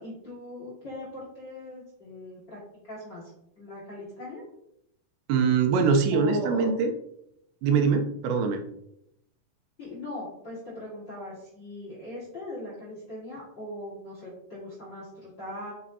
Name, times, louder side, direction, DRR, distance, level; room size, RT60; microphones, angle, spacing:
voice 1, 0.0-2.6 2.9-3.3 3.6-4.4 6.1-6.7 9.8-15.7, left 1 dB, 45° left, -5 dB, 1.5 m, -39 dB
voice 2, 5.3-6.9 7.6-8.6, right 5 dB, 85° right, 5 dB, 2.9 m, -23 dB
8.5 x 6.0 x 2.8 m, 0.78 s
omnidirectional pair, 5.2 m